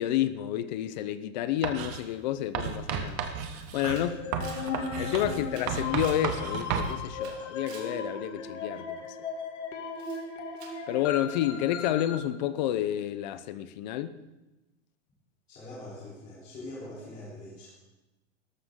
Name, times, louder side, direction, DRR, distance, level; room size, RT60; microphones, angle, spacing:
voice 1, 0.0-3.2 3.7-4.2 5.0-9.0 10.9-14.2, left 12 dB, 40° left, 0.7 m, -30 dB
Writing, 1.6-2.0 2.5-6.9, right 7 dB, 15° right, 0.3 m, -33 dB
Camera, 3.1-3.2 3.5-6.3 6.7-8.0 9.9-10.2 10.6-10.8, right 6 dB, 45° right, 2.3 m, -50 dB
sound 1, 3.8-12.2, left 5 dB, 85° left, 2.5 m, -37 dB
voice 2, 15.5-17.7, left 1 dB, 20° left, 3.5 m, -43 dB
17.0 x 13.5 x 3.7 m
supercardioid pair, 175°, 35 cm